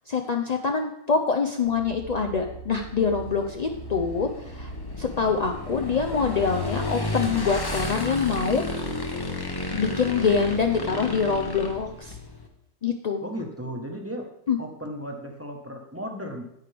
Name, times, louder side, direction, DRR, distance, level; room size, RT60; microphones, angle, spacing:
voice 1, 0.1-4.7 5.0-8.6 9.7-12.2 12.8-13.2 14.5-14.6, left 5 dB, 65° left, 3 dB, 0.4 m, -25 dB
sound 1, 1.6-12.0, right 1 dB, 50° left, 1.3 m, -42 dB
Motorcycle / Engine, 2.8-12.5, left 2 dB, 20° left, 0.7 m, -33 dB
voice 2, 13.2-14.3 14.6-16.4, equal, 10° right, 2 dB, 1.0 m, -35 dB
9.2 x 9.2 x 3.4 m, 0.76 s
omnidirectional pair, 1.6 m